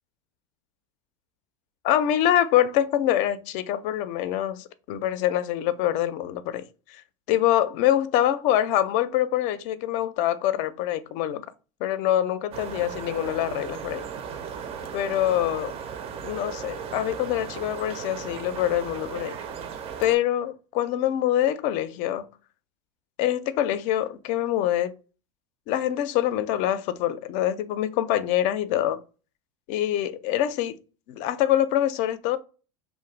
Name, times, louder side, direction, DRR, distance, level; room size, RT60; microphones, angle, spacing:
voice 1, 1.8-7.0 7.3-11.5 11.8-14.0 14.9-15.7 16.2-19.4 20.0-22.3 23.2-25.0 25.7-29.0 29.7-30.8 31.1-32.4, left 12 dB, 50° left, 0.4 m, -25 dB
sound 1, 12.5-20.2, right 7 dB, 40° right, 0.4 m, -36 dB
2.4 x 2.1 x 3.1 m
hypercardioid pair, 85°, 16 cm